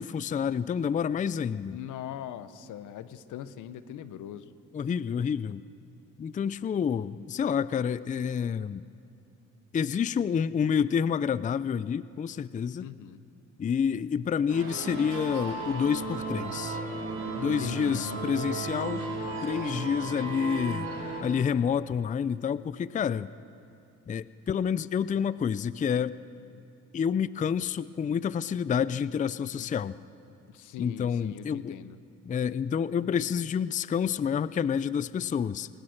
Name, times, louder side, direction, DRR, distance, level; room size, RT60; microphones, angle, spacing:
voice 1, 0.0-1.8 4.7-5.6 6.2-8.8 9.7-12.9 13.6-16.8 17.4-19.0 19.4-20.9 21.2-23.3 24.1-26.2 26.9-29.9 30.8-31.8 32.3-35.7, left 7 dB, 25° left, 17 dB, 0.4 m, -28 dB
voice 2, 1.7-4.5 12.8-13.2 17.4-18.4 29.6-29.7 30.5-32.0, left 10 dB, 85° left, 13 dB, 1.0 m, -42 dB
sound 1, 14.5-21.2, right 3 dB, 60° right, 5.4 m, -35 dB
21.0 x 20.0 x 6.5 m, 2.7 s
cardioid pair, 90°, 30 cm